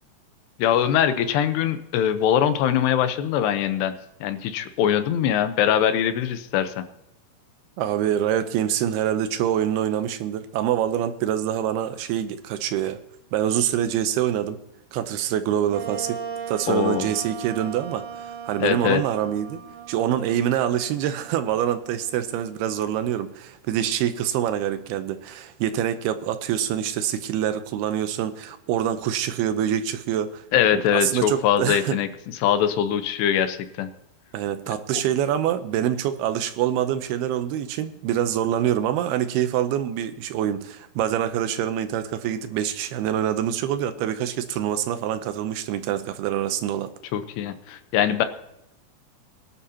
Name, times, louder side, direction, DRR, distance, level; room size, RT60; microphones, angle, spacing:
voice 1, 0.6-3.9 4.2-6.9 16.7-17.1 18.6-19.0 30.5-32.1 32.4-33.9 34.9-35.0 47.1-48.3, left 9 dB, 80° left, 3.0 m, -22 dB
voice 2, 7.8-13.0 13.3-14.6 14.9-16.2 16.5-19.6 19.9-30.4 30.7-32.0 34.3-46.9, right 10 dB, 80° right, 2.5 m, -25 dB
Wind instrument woodwind instrument, 15.7-23.1, right 7 dB, 60° right, 2.5 m, -38 dB
21.5 x 11.5 x 2.8 m
omnidirectional pair, 4.8 m